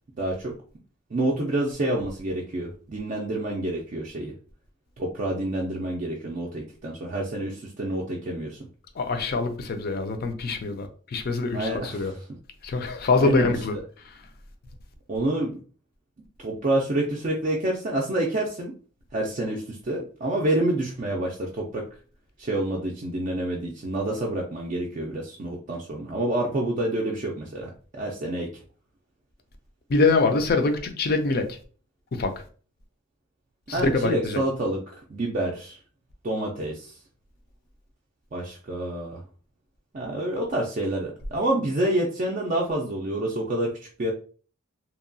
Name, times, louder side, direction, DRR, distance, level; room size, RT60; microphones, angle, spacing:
voice 1, 0.2-0.5 1.1-4.3 5.0-8.6 11.5-12.2 13.2-13.6 15.1-15.6 16.4-18.7 19.1-21.8 22.4-28.5 33.7-35.8 36.2-36.9 38.3-39.2 39.9-43.7 44.0-44.1, right 1 dB, 35° right, 0.4 m, -28 dB
voice 2, 9.0-12.1 12.6-13.7 29.9-31.6 32.1-32.3 33.7-34.4, left 3 dB, 45° left, 0.4 m, -24 dB
2.8 x 2.2 x 2.5 m
head